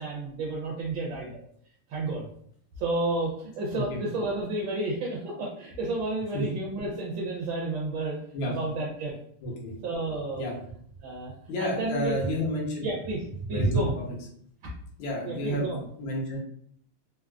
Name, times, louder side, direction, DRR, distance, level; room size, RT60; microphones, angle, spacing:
voice 1, 0.0-1.4 1.9-2.3 2.8-8.2 8.4-9.1 9.8-10.4 11.0-12.2 12.8-14.0 15.2-15.9, right 2 dB, 75° right, -3 dB, 1.3 m, -31 dB
voice 2, 11.5-12.9 13.5-14.1 15.0-15.7 16.0-16.4, equal, 70° left, -2 dB, 1.5 m, -29 dB
3.8 x 2.3 x 2.3 m, 0.64 s
omnidirectional pair, 2.4 m